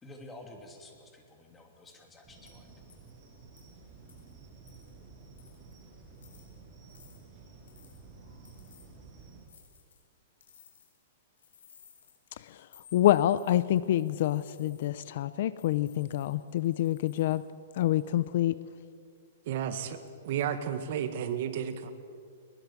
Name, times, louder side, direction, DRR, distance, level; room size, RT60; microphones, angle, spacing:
voice 1, 0.0-2.7, left 1 dB, 10° left, 3 dB, 2.9 m, -50 dB
sound 1, 1.9-2.0 2.5-2.6 2.9-3.1 3.6-3.7 4.1-4.3 4.7-4.9 5.4-5.7 6.1-6.5 6.9-7.2 7.7-8.0 8.4-8.9 9.4-10.0 10.4-11.0 11.4-12.2 12.7-14.9 15.6-17.4 17.8-18.1, left 8 dB, 90° left, 5.4 m, -59 dB
sound 2, 2.2-9.4, right 4 dB, 20° right, 6.6 m, -52 dB
voice 2, 12.9-17.4 17.8-18.6, left 13 dB, 55° left, 17 dB, 0.6 m, -27 dB
voice 3, 19.5-20.0 20.2-21.9, right 9 dB, 55° right, 9 dB, 1.7 m, -32 dB
22.5 x 21.5 x 7.4 m, 2.2 s
hypercardioid pair, 160°, 0 cm